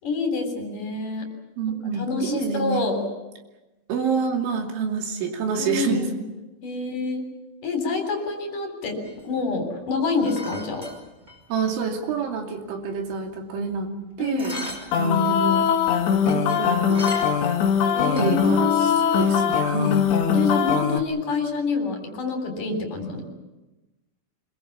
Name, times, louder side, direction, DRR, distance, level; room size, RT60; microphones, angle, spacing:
voice 1, 0.0-1.2 2.0-3.0 5.6-6.3 6.6-7.2 7.6-9.0 9.2-10.8 14.2-14.6 17.9-19.2 20.3-23.2, left 4 dB, 45° left, 4 dB, 4.9 m, -27 dB
voice 2, 1.6-2.9 3.9-6.1 11.5-14.7 15.0-15.8 16.1-17.1 18.2-20.0, right 4 dB, 90° right, 2 dB, 5.2 m, -27 dB
sound 1, 9.0-11.7 12.0-12.1 12.4-14.0 14.4-15.0 15.3-17.6 17.9-18.6, equal, 10° right, 5.6 m, -38 dB
sound 2, 14.9-21.0, left 7 dB, 70° left, 3.7 m, -21 dB
26.0 x 22.0 x 7.3 m, 1.0 s
omnidirectional pair, 5.3 m